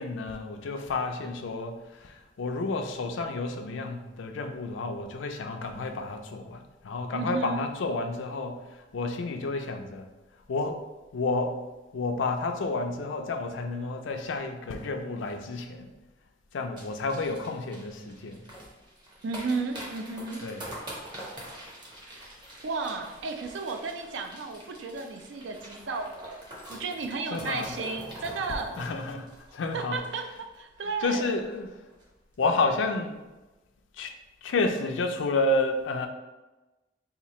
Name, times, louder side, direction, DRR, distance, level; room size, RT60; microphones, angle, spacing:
voice 1, 0.0-8.6 8.9-10.1 10.5-10.8 11.1-11.6 11.9-15.9 16.5-18.4 20.4-20.6 27.3-27.7 28.8-30.0 31.0-31.7 32.4-33.2 34.0-34.1 34.4-36.1, left 3 dB, 90° left, 5 dB, 0.4 m, -30 dB
voice 2, 7.1-7.7 19.2-20.5 22.1-22.2 22.6-26.4 26.7-28.8 29.7-31.3, right 4 dB, 75° right, 5 dB, 0.4 m, -33 dB
sound 1, 16.8-30.6 30.8-30.9 31.2-31.5 31.9-32.0, right 1 dB, 25° right, 0.7 m, -45 dB
2.9 x 2.4 x 4.1 m, 1.1 s
head